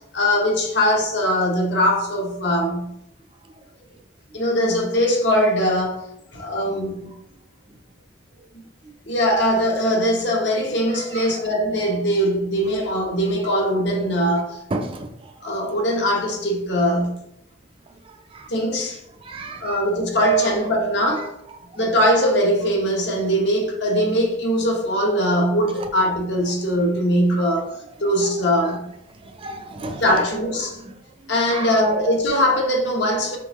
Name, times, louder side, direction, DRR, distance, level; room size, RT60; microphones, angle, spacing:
voice 1, 0.1-2.9 4.3-6.0 6.3-7.1 9.1-14.6 15.4-17.1 18.5-19.0 19.6-21.3 21.8-28.8 30.0-30.8 31.3-33.4, equal, 65° left, 0.9 m, -21 dB
voice 2, 14.7-15.1 18.3-18.4 19.3-19.8 28.6-28.8 29.4-30.0 31.5-32.0, right 2 dB, 30° right, 0.3 m, -31 dB
3.7 x 3.5 x 3.0 m
head